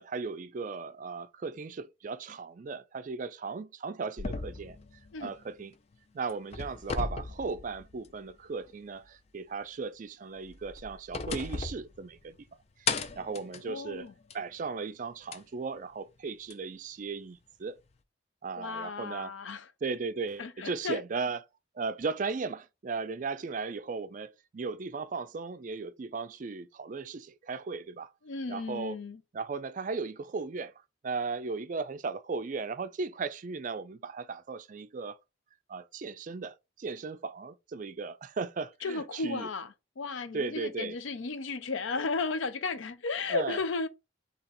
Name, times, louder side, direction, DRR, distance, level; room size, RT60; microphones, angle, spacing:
voice 1, 0.0-4.8 5.2-5.7 6.1-12.4 12.8-12.9 13.2-14.1 14.3-17.8 18.4-19.3 19.8-21.4 21.7-28.1 28.5-29.0 29.3-30.7 31.0-35.2 35.7-39.5 40.3-41.0 43.3-43.6, right 4 dB, 40° right, 0.4 m, -36 dB
sound 1, 4.2-5.9 6.3-8.3 8.7-8.8 10.4-12.5 12.9-14.5 15.3-15.4 16.5-16.6, left 4 dB, 35° left, 0.4 m, -37 dB
voice 2, 13.7-14.1 18.6-19.7 20.4-21.0 28.2-29.2 38.8-43.9, left 4 dB, 85° left, 0.6 m, -34 dB
3.9 x 2.9 x 4.2 m
head